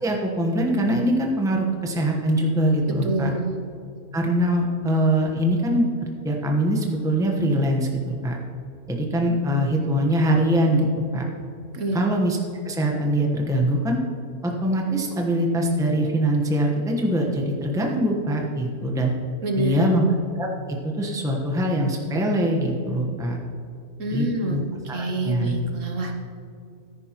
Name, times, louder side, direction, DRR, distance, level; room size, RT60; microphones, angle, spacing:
voice 1, 0.0-3.3 4.1-5.9 6.2-8.4 8.9-10.9 11.1-11.3 11.9-12.4 12.6-14.0 14.4-19.1 19.6-20.0 20.4-23.4 24.1-24.6 24.9-25.5, right 1 dB, 5° right, 0 dB, 0.9 m, -23 dB
voice 2, 3.0-3.6 11.7-12.1 19.4-20.0 24.0-26.2, right 2 dB, 60° right, 3 dB, 1.1 m, -27 dB
14.0 x 10.5 x 3.0 m, 2.5 s
omnidirectional pair, 1.6 m